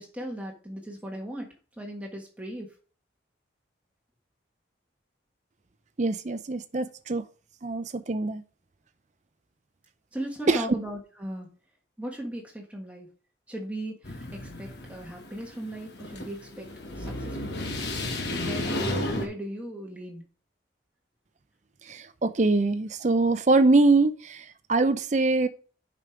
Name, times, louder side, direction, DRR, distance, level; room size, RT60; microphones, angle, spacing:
voice 1, 0.0-1.5 1.8-2.7 10.1-11.5 12.0-13.1 13.5-16.7 17.0-17.7 18.3-20.2, right 1 dB, 5° right, 1.5 m, -37 dB
voice 2, 6.0-7.2 7.6-8.4 10.5-10.6 21.8-25.5, right 3 dB, 40° right, 0.5 m, -23 dB
sound 1, 14.0-19.3, left 1 dB, 60° left, 1.2 m, -33 dB
7.2 x 5.0 x 4.6 m
head